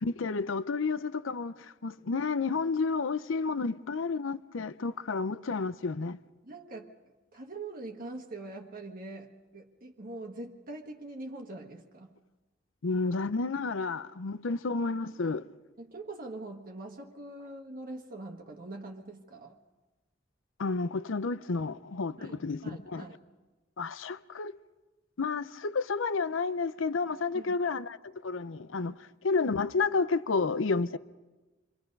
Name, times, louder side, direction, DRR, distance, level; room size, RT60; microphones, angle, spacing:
voice 1, 0.0-6.2 12.8-15.5 20.6-23.0 23.8-24.5 25.2-31.0, left 4 dB, 75° left, 0.6 m, -31 dB
voice 2, 6.4-6.9 7.3-12.1 15.8-19.6 22.2-23.2 27.3-27.5, right 2 dB, 50° right, 1.5 m, -43 dB
28.5 x 23.0 x 5.4 m
head